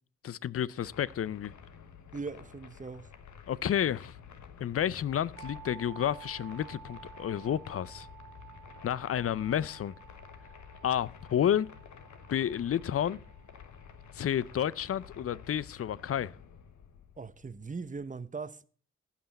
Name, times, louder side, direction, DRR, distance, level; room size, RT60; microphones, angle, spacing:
voice 1, 0.2-1.5 3.5-4.2 4.6-8.1 8.8-9.9 10.8-11.7 12.3-13.2 14.1-16.3, left 10 dB, 50° left, 0.6 m, -30 dB
sound 1, 0.8-18.1, left 7 dB, 70° left, 1.2 m, -51 dB
voice 2, 2.1-3.1 17.2-18.6, right 4 dB, 25° right, 0.8 m, -40 dB
sound 2, 5.4-15.1, right 11 dB, 75° right, 1.5 m, -53 dB
15.5 x 5.9 x 4.1 m
supercardioid pair, 45°, 30 cm